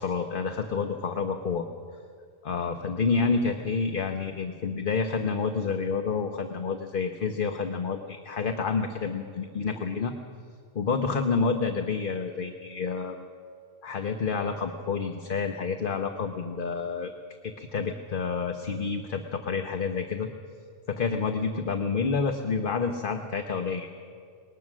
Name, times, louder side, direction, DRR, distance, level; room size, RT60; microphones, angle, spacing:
voice 1, 0.0-1.7 2.4-10.1 10.7-13.2 13.8-17.1 17.4-20.3 20.9-23.9, left 5 dB, 45° left, 5 dB, 1.1 m, -29 dB
20.5 x 20.0 x 6.3 m, 2.1 s
omnidirectional pair, 1.2 m